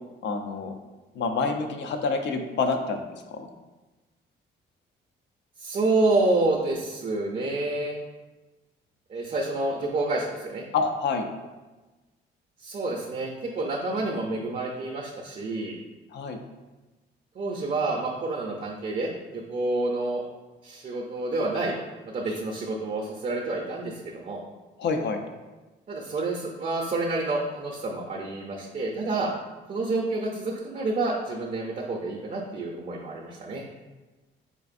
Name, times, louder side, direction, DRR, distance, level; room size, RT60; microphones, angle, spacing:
voice 1, 0.2-0.8 1.1-3.5 10.7-11.3 16.1-16.4 24.8-25.2, left 4 dB, 65° left, 5 dB, 0.5 m, -27 dB
voice 2, 5.6-8.0 9.1-10.6 12.6-15.8 17.3-20.2 20.6-21.8 22.1-24.4 25.9-29.3 29.7-33.7, right 2 dB, 40° right, -1 dB, 0.5 m, -28 dB
4.4 x 2.5 x 2.5 m, 1.2 s
cardioid pair, 90°, 20 cm